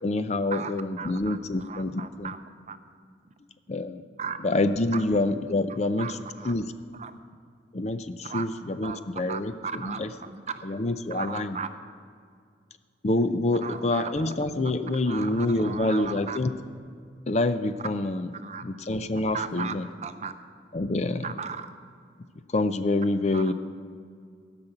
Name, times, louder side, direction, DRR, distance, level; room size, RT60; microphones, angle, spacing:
voice 1, 0.0-2.3 3.7-4.0 4.4-6.7 7.7-10.2 10.6-11.6 13.0-16.6 17.3-18.3 18.6-19.9 20.7-21.3 22.5-23.5, left 2 dB, 35° left, 11 dB, 0.5 m, -27 dB
voice 2, 0.5-2.4 2.7-2.8 4.2-4.4 4.9-5.0 6.0-6.5 7.0-7.1 8.2-8.4 8.8-9.0 9.3-10.4 11.1-11.7 13.6-14.1 15.1-16.4 18.4-18.6 19.3-19.7 20.0-20.3 21.2-21.7 23.3-23.5, right 6 dB, 40° right, 10 dB, 0.6 m, -36 dB
16.5 x 5.9 x 7.8 m, 2.2 s
head